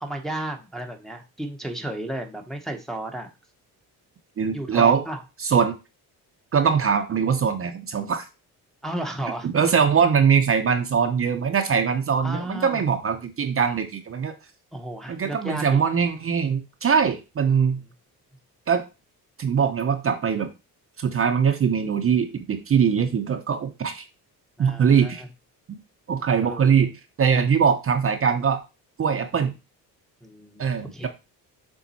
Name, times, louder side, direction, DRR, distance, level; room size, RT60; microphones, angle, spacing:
voice 1, 0.0-3.3 4.5-5.2 8.8-9.5 12.2-12.8 14.7-15.8 24.6-25.3 26.4-26.9 30.2-31.1, right 1 dB, ahead, 2 dB, 0.8 m, -33 dB
voice 2, 4.4-5.0 5.4-5.7 6.5-8.2 9.4-14.3 15.1-17.8 18.7-18.8 19.4-20.5 21.0-24.0 24.6-25.2 26.1-26.9 27.2-28.6 29.0-29.5 30.6-31.1, right 6 dB, 35° right, 6 dB, 0.7 m, -22 dB
7.2 x 3.6 x 4.1 m, 0.28 s
cardioid pair, 135°, 38 cm